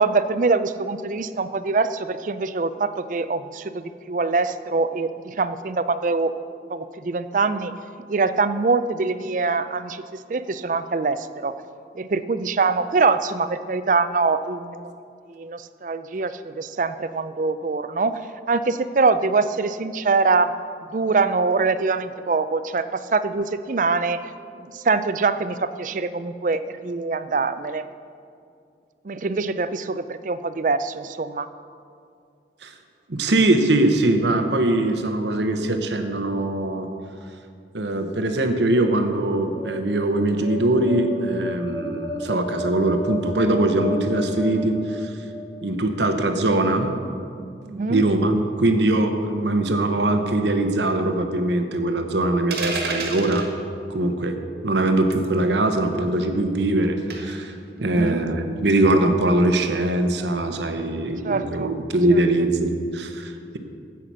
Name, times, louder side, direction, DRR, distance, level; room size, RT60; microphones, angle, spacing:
voice 1, 0.0-6.3 6.7-7.7 8.1-11.5 11.9-14.9 15.3-18.2 18.5-20.5 20.9-24.2 24.6-27.8 29.0-31.5 47.7-48.0 57.8-58.3 61.2-61.7 62.1-62.2, right 4 dB, 45° right, 13 dB, 0.4 m, -24 dB
voice 2, 33.1-36.9 37.7-45.1 45.6-46.9 47.9-53.5 53.9-54.4 54.6-57.5 57.8-63.6, right 2 dB, 85° right, 6 dB, 1.0 m, -22 dB
sound 1, 39.2-45.7, left 2 dB, 25° left, 1.8 m, -34 dB
sound 2, 52.5-53.5 55.1-55.4 57.1-57.4, right 3 dB, 65° right, 1.6 m, -29 dB
15.5 x 5.8 x 6.2 m, 2.4 s
head